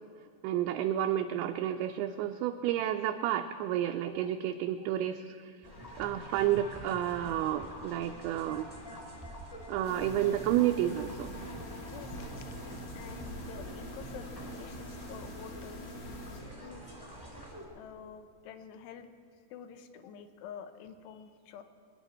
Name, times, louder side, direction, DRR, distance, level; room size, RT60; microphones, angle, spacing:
voice 1, 0.4-5.5 6.0-8.7 9.7-11.3, right 11 dB, 80° right, 5 dB, 2.4 m, -30 dB
sound 1, 5.6-17.6, right 1 dB, 10° left, 1.3 m, -46 dB
sound 2, 9.8-16.4, equal, 65° left, 3.8 m, -44 dB
voice 2, 11.8-16.8 17.7-21.6, left 8 dB, 80° left, 9 dB, 2.9 m, -49 dB
24.0 x 10.5 x 4.3 m, 2.2 s
omnidirectional pair, 4.8 m